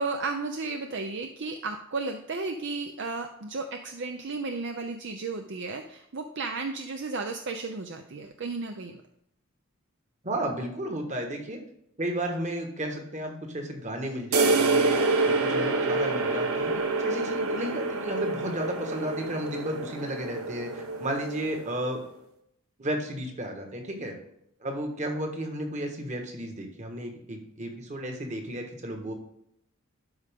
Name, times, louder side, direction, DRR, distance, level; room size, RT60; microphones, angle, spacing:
voice 1, 0.0-9.0, right 3 dB, 60° right, 5 dB, 0.6 m, -33 dB
voice 2, 10.2-11.6 12.0-22.0 22.8-24.2 24.6-29.1, right 1 dB, 35° right, 3 dB, 1.5 m, -33 dB
sound 1, 14.3-21.9, right 3 dB, 85° right, 1.0 m, -27 dB
12.0 x 5.0 x 3.6 m, 0.75 s
head